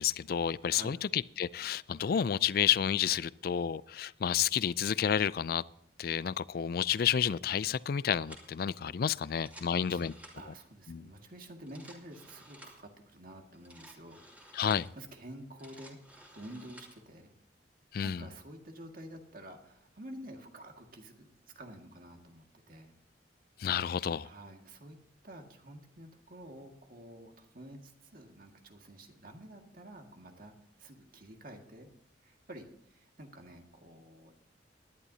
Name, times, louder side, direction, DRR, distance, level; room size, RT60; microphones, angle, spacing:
voice 1, 0.0-5.6 6.0-10.1 10.9-11.1 14.5-14.9 17.9-18.2 23.6-24.3, left 8 dB, 55° left, 0.4 m, -30 dB
sound 1, 8.3-8.6 9.3-10.6 11.5-12.9 13.5-14.9 15.4-17.0, right 1 dB, 10° right, 2.6 m, -54 dB
voice 2, 9.2-10.1 10.4-14.2 14.9-16.0 16.3-17.3 18.0-23.0 24.2-25.0 25.2-31.9 32.2-34.3, right 1 dB, 50° right, 1.9 m, -50 dB
19.5 x 11.0 x 2.8 m
head